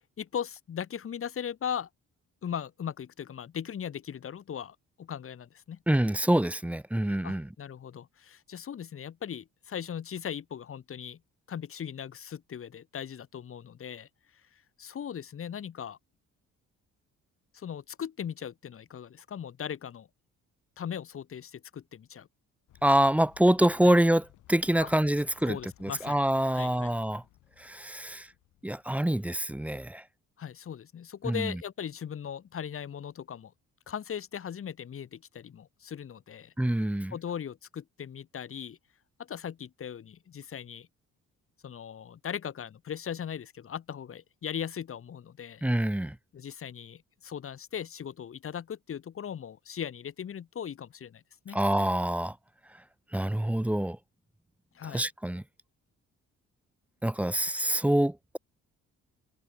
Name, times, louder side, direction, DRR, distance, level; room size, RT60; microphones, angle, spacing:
voice 1, 0.2-1.9 2.4-5.8 7.2-11.2 11.5-14.1 14.5-16.0 17.5-20.1 20.8-22.3 23.8-23.9 24.8-24.9 25.5-26.2 26.5-26.9 30.4-33.5 33.9-36.5 37.1-38.8 39.2-40.9 41.6-45.6 46.3-51.6 54.7-55.1, left 8 dB, 45° left, 1.3 m, -38 dB
voice 2, 5.9-7.5 22.8-24.2 24.5-25.6 25.8-27.2 27.6-28.3 28.6-30.0 31.3-31.5 36.6-37.1 45.6-46.1 51.5-52.3 53.1-54.0 54.9-55.4 57.0-58.4, right 1 dB, 5° right, 0.6 m, -26 dB
sound 1, 22.7-30.1, left 15 dB, 90° left, 5.6 m, -60 dB
cardioid pair, 90°, 30 cm